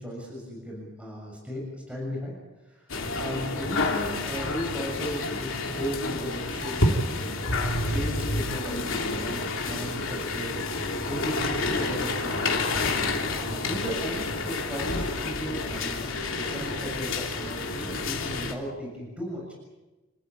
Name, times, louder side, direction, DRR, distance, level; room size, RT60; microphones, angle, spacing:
voice 1, 0.0-1.6 1.9-2.3 2.7-7.6 7.9-10.6 11.1-12.8 13.4-19.5, equal, 5° right, -2 dB, 6.7 m, -36 dB
sound 1, 2.9-18.5, left 2 dB, 70° left, 3.2 m, -29 dB
28.5 x 14.5 x 8.8 m, 1.1 s
head